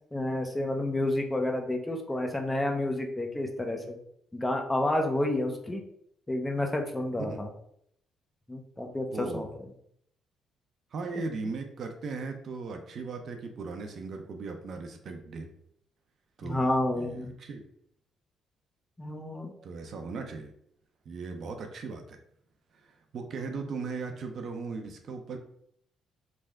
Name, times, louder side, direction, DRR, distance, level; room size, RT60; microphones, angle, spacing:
voice 1, 0.1-4.0 4.3-5.8 6.3-7.5 8.5-9.7 11.1-11.5 16.4-17.3 19.0-19.5, left 1 dB, 15° left, 3 dB, 0.6 m, -30 dB
voice 2, 9.1-9.6 10.9-15.5 16.4-17.6 19.6-20.5 21.1-22.2 22.8-25.4, right 4 dB, 60° right, 4 dB, 0.5 m, -38 dB
3.4 x 2.0 x 3.5 m, 0.70 s
supercardioid pair, 60°, 0 cm